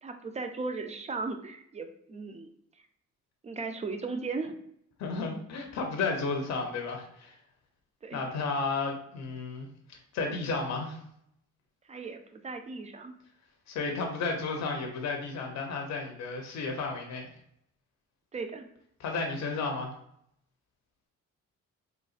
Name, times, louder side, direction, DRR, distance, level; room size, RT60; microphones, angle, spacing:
voice 1, 0.0-2.5 3.4-4.6 8.0-8.2 11.9-13.1 18.3-18.7, right 3 dB, 25° right, 7 dB, 0.4 m, -37 dB
voice 2, 5.0-7.4 8.1-11.0 13.7-17.3 19.0-19.9, left 4 dB, 65° left, 2 dB, 0.7 m, -33 dB
3.9 x 2.3 x 2.4 m, 0.72 s
cardioid pair, 90°, 30 cm